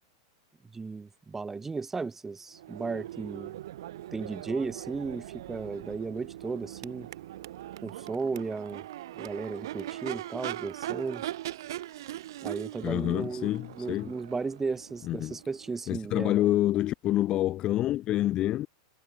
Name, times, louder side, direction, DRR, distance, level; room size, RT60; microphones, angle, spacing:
voice 1, 0.7-3.6 4.1-7.1 7.8-8.8 9.1-11.2 12.4-16.4, right 4 dB, 15° right, 1.2 m, -35 dB
Crowd / Race car auto racing / Accelerating revving vroom, 2.5-16.4, right 13 dB, 70° right, 0.5 m, -41 dB
voice 2, 12.8-14.1 15.0-15.4 15.9-18.7, left 14 dB, 35° left, 0.3 m, -27 dB
hypercardioid pair, 110°, 2 cm